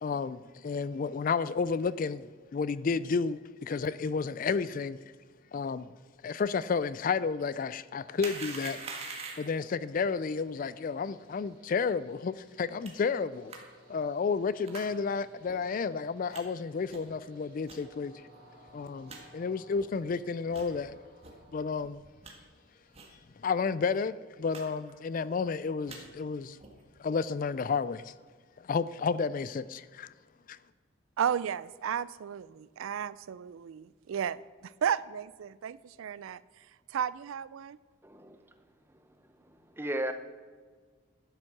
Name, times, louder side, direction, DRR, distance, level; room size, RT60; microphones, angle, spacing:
voice 1, 0.0-5.0 5.5-5.9 6.2-8.8 9.4-13.5 13.9-18.2 18.7-21.0 21.5-22.0 23.4-26.6 27.0-28.1 28.6-30.1 30.5-30.6, left 5 dB, 40° left, 17 dB, 0.3 m, -31 dB
Train, 7.1-23.9, right 1 dB, 50° right, 4.0 m, -61 dB
sound 1, 8.2-9.6 12.8-12.9 13.5-13.6 14.6-14.9 15.4-15.6 16.3-16.4 16.9-17.1 17.7-17.8 18.3-18.4 18.7-18.8 19.1-19.2 19.7-19.9 20.5-20.7 21.2-21.3 21.8-22.3 22.9-23.1 23.4-23.5 23.8-24.0 24.5-24.6 24.9-25.3 25.7-26.0 26.6-26.8, right 4 dB, 30° right, 1.6 m, -43 dB
voice 2, 31.2-36.4 36.9-37.8, right 8 dB, 75° right, 19 dB, 0.4 m, -33 dB
voice 3, 38.0-38.4 39.5-40.1, right 1 dB, 10° right, 8 dB, 0.7 m, -35 dB
12.0 x 9.0 x 5.9 m, 1.6 s
head